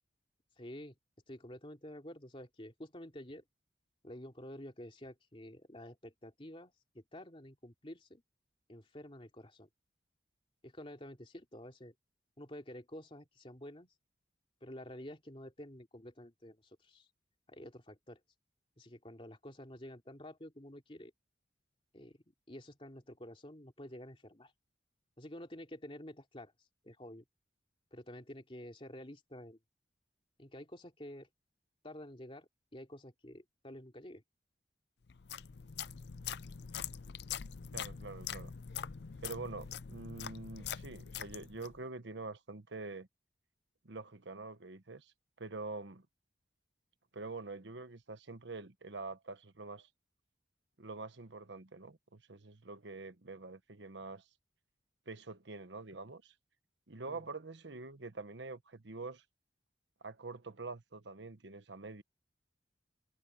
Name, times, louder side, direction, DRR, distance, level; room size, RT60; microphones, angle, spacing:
voice 1, 0.6-1.0 1.3-3.4 4.0-8.2 8.7-9.7 10.6-11.9 12.4-13.9 14.6-17.1 17.5-18.2 18.8-21.1 21.9-22.2 22.5-24.5 25.2-26.5 26.8-27.2 27.9-29.6 30.4-31.3 31.8-34.2 57.1-57.2, left 1 dB, 30° left, 3.0 m, -50 dB
sound 1, 35.1-41.8, left 8 dB, 65° left, 0.5 m, -44 dB
voice 2, 37.7-38.5 39.2-43.1 43.8-45.1 45.4-46.1 47.1-49.9 50.8-54.2 55.1-56.3 56.9-59.2 60.0-62.0, right 3 dB, 75° right, 1.2 m, -46 dB
head